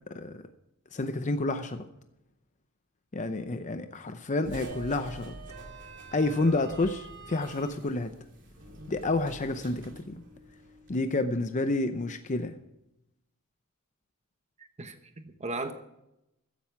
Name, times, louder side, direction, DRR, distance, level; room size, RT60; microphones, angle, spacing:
voice 1, 0.1-0.4 0.9-1.9 3.1-5.3 6.1-8.1 8.9-10.2 10.9-12.6, left 2 dB, 35° left, 9 dB, 0.7 m, -29 dB
sound 1, 4.4-11.0, right 2 dB, 55° right, 2.8 m, -46 dB
voice 2, 14.6-15.7, right 2 dB, 30° right, 8 dB, 1.0 m, -37 dB
14.5 x 10.5 x 4.6 m, 0.86 s
head